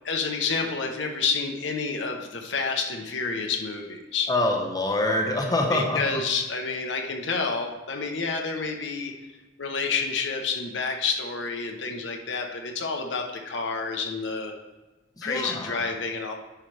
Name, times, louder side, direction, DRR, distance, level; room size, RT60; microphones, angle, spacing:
voice 1, 0.0-4.3 5.7-9.1 9.6-14.5 15.2-16.3, left 4 dB, 75° left, 3 dB, 0.9 m, -29 dB
voice 2, 4.3-6.2 15.2-15.8, left 2 dB, 20° left, 1 dB, 1.0 m, -25 dB
10.5 x 4.9 x 3.3 m, 1.1 s
head